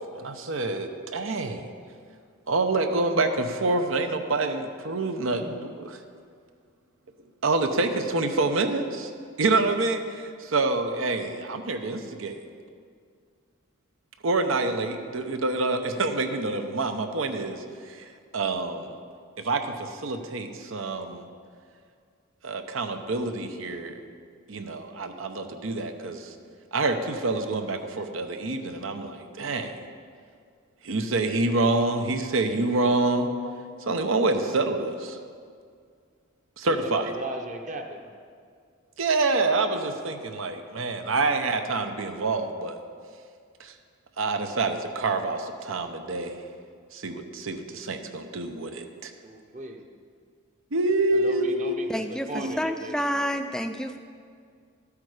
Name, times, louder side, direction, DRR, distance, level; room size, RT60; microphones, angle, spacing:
voice 1, 0.1-1.7 2.5-6.0 7.4-9.1 9.4-12.4 14.2-18.0 18.3-18.9 19.4-21.2 22.4-24.0 24.5-26.3 26.7-29.8 30.8-33.3 33.9-35.2 36.6-37.1 39.0-42.8 43.6-43.7 44.2-46.4 46.9-49.1 50.7-51.9 52.3-52.6, right 3 dB, 85° right, 7 dB, 0.8 m, -27 dB
voice 2, 36.7-38.1 40.3-40.4 49.2-49.8 51.2-53.4, right 1 dB, 35° right, 4 dB, 0.8 m, -37 dB
voice 3, 51.9-54.0, equal, 5° left, 8 dB, 0.4 m, -29 dB
12.5 x 8.4 x 4.9 m, 2.2 s
head